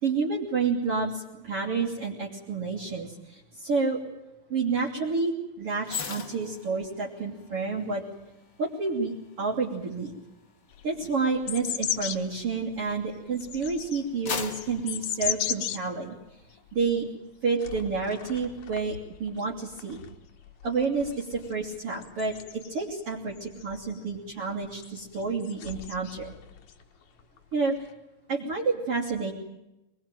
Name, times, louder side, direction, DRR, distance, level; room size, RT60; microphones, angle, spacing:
voice 1, 0.0-4.0 4.5-8.0 8.6-10.2 10.8-16.1 16.7-17.1 17.4-20.0 20.6-22.4 22.7-26.3 27.5-27.8 28.3-29.3, right 4 dB, 40° right, -5 dB, 3.5 m, -29 dB
sound 1, 5.8-13.2 13.7-16.1 16.4-16.7, left 6 dB, 45° left, 1.5 m, -41 dB
sound 2, 10.7-12.3 12.9-15.8 16.3-16.4 16.7-16.9 17.6-18.9 19.1-23.0 23.4-24.0 24.7-26.8 27.2-27.9, left 10 dB, 65° left, 2.2 m, -36 dB
23.5 x 20.5 x 9.1 m, 0.96 s
omnidirectional pair, 4.0 m